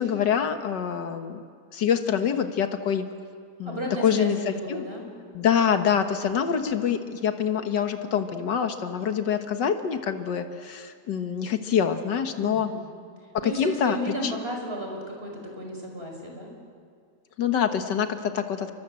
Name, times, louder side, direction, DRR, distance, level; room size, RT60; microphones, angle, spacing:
voice 1, 0.0-1.4 1.7-3.1 3.6-4.8 5.3-12.7 13.4-14.3 17.4-18.7, left 8 dB, 90° left, 7 dB, 2.0 m, -25 dB
voice 2, 3.6-5.0 12.4-12.8 13.4-16.5, equal, 35° right, 1 dB, 5.8 m, -33 dB
29.0 x 24.0 x 7.8 m, 2.1 s
omnidirectional pair, 1.8 m